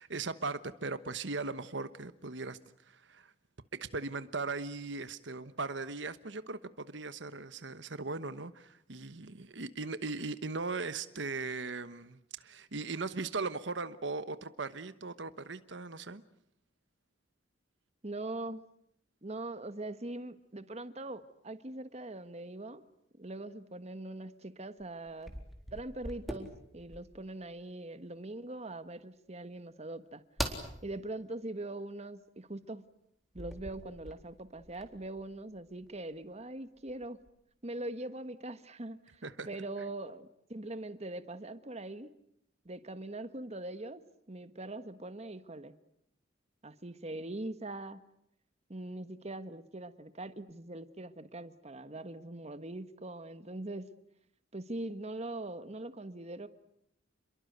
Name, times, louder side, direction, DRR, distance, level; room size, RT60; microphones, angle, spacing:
voice 1, 0.0-3.3 3.7-16.2 39.2-39.5, right 3 dB, 70° right, 13 dB, 1.2 m, -38 dB
voice 2, 18.0-18.6 19.2-22.8 23.2-25.3 25.7-30.2 30.8-32.8 33.3-37.2 37.6-42.1 42.6-45.7 46.6-48.0 48.7-53.8 54.5-56.5, right 2 dB, 35° right, 11 dB, 1.4 m, -42 dB
sound 1, 24.8-27.3 30.4-30.7 33.3-36.2 36.8-37.3, equal, ahead, 4.0 m, -42 dB
29.5 x 22.5 x 8.1 m, 0.73 s
head